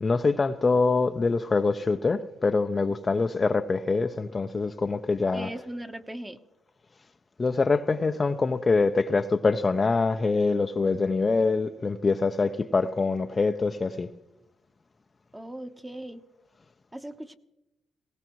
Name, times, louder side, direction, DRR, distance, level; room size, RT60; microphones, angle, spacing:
voice 1, 0.0-5.5 7.4-14.1, left 4 dB, 30° left, 0.6 m, -24 dB
voice 2, 5.3-6.4 15.3-16.2 16.9-17.4, right 1 dB, 10° right, 1.0 m, -38 dB
19.0 x 18.0 x 3.1 m
cardioid pair, 90°, 0 cm